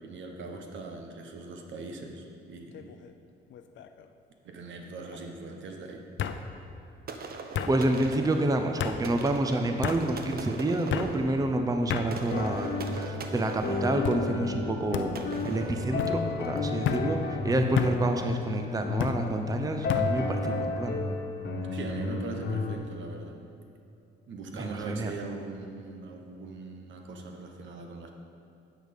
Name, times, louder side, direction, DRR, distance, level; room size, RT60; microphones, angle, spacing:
voice 1, 0.0-3.0 4.4-6.1 16.7-16.8 21.7-23.4 24.3-28.1, right 3 dB, 70° right, 3 dB, 1.2 m, -41 dB
sound 1, 2.7-3.1 3.5-4.1 5.1-5.2 6.2-6.4 7.5-7.7 8.8-9.0 9.8-10.0 10.9-11.1 11.9-12.1 12.8-13.3 14.0-14.2 14.9-15.1 16.0-16.2 16.8-17.1 17.8-18.0 19.0-19.2 19.9-20.1, left 9 dB, 70° left, 0.6 m, -31 dB
sound 2, 7.1-16.7, right 4 dB, 50° right, 0.9 m, -41 dB
voice 2, 7.7-15.1 15.4-17.2 17.4-21.0 24.5-25.1, right 2 dB, 20° right, 5 dB, 0.7 m, -28 dB
sound 3, 12.3-22.7, left 4 dB, 55° left, 1.3 m, -32 dB
10.0 x 6.6 x 5.3 m, 2.8 s
cardioid pair, 90°, 20 cm